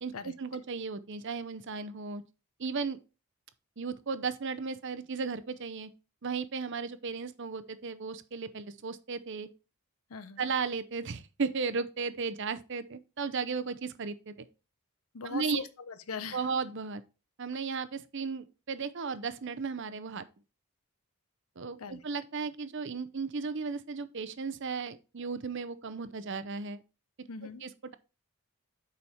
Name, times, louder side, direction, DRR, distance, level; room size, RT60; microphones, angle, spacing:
voice 1, 0.0-2.2 2.6-3.0 3.8-5.9 6.2-9.5 10.4-14.3 15.2-15.6 16.3-17.0 17.4-20.2 21.6-26.8 27.6-27.9, right 5 dB, 55° right, 0.7 m, -35 dB
voice 2, 10.1-10.5 15.1-16.4 21.8-22.0 27.3-27.6, left 5 dB, 75° left, 0.7 m, -40 dB
7.0 x 5.1 x 4.3 m
head